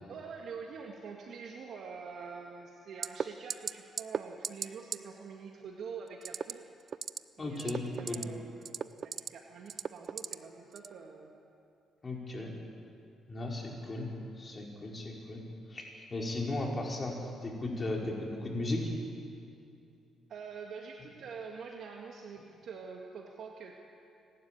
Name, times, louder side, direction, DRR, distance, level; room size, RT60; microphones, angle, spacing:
voice 1, 0.1-6.6 7.4-11.3 20.3-23.8, right 5 dB, 65° right, 0 dB, 1.8 m, -45 dB
sound 1, 3.0-3.2 3.5-3.7 4.0-4.2 4.4-4.7 4.9-5.0 6.2-6.5 6.9-7.2 7.6-8.2 8.6-9.3 9.7-10.3 10.8-10.9, right 7 dB, 50° right, 0.6 m, -34 dB
voice 2, 7.4-8.2 12.0-12.5 13.3-14.1 14.4-15.4 15.7-18.9, left 2 dB, 30° left, -1 dB, 5.2 m, -36 dB
29.5 x 12.5 x 9.3 m, 2.5 s
cardioid pair, 90°, 0 cm